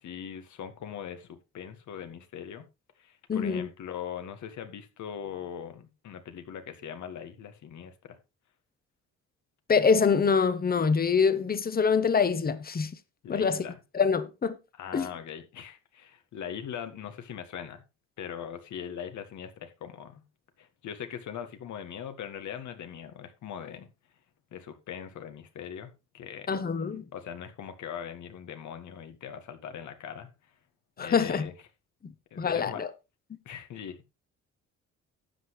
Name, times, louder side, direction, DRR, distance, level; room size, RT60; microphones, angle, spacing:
voice 1, 0.0-2.6 3.0-8.2 13.2-13.8 14.7-17.8 18.2-20.2 20.6-23.9 24.5-26.6 27.1-30.3 31.0-31.5 32.3-32.8 33.5-34.1, left 8 dB, 70° left, 1.9 m, -41 dB
voice 2, 3.3-3.7 9.7-12.9 13.3-13.6 13.9-14.6 14.9-15.1 26.5-27.1 31.0-31.5 32.0-32.9, left 5 dB, 30° left, 1.1 m, -25 dB
12.5 x 8.1 x 3.2 m
cardioid pair, 90°, 30 cm